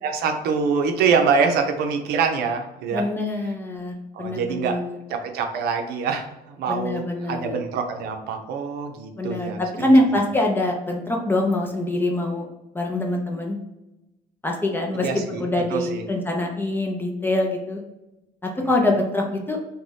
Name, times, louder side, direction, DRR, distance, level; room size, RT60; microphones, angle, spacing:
voice 1, 0.0-3.1 4.1-4.8 5.1-9.6 15.0-15.4 15.7-16.0, right 5 dB, 75° right, 5 dB, 0.6 m, -24 dB
voice 2, 2.9-5.0 6.7-7.6 9.2-12.5 12.7-13.6 14.4-17.8 18.4-19.6, left 1 dB, 15° left, 1 dB, 0.4 m, -24 dB
2.6 x 2.2 x 3.2 m, 0.96 s
cardioid pair, 140°, 17 cm